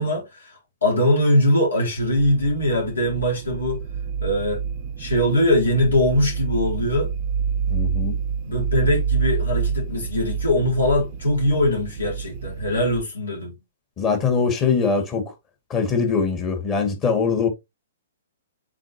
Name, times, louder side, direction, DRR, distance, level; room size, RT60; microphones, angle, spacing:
voice 1, 0.0-3.8 4.2-4.6 5.0-7.1 8.4-13.5, left 1 dB, 75° left, 3.9 m, -21 dB
sound 1, 2.0-13.0, right 6 dB, 40° right, 0.8 m, -28 dB
voice 2, 7.7-8.2 14.0-15.3 15.7-17.5, left 5 dB, 25° left, 2.1 m, -22 dB
7.4 x 5.1 x 2.9 m
figure-of-eight pair, 115°, 0 cm